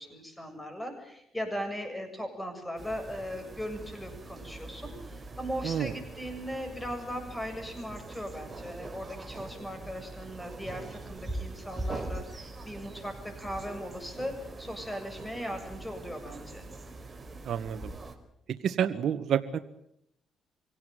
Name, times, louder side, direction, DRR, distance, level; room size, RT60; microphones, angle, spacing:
voice 1, 0.0-16.7, equal, 5° left, 6 dB, 7.4 m, -38 dB
sound 1, 2.8-18.2, right 2 dB, 25° right, 4.3 m, -42 dB
voice 2, 17.4-17.9 18.6-19.6, right 9 dB, 65° right, 7 dB, 1.4 m, -29 dB
24.5 x 17.5 x 9.4 m, 0.75 s
cardioid pair, 90°, 0 cm